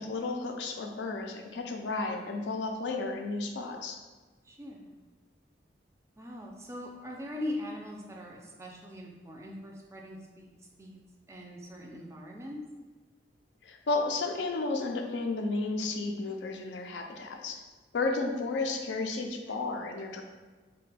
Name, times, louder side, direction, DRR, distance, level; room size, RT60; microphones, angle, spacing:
voice 1, 0.0-4.0 13.6-17.6 17.9-20.2, left 3 dB, 70° left, 3 dB, 0.4 m, -33 dB
voice 2, 4.4-5.0 6.2-10.5 10.8-11.0 11.3-12.6 19.5-19.6, left 1 dB, 15° right, 0 dB, 0.3 m, -41 dB
3.2 x 2.1 x 3.2 m, 1.3 s
head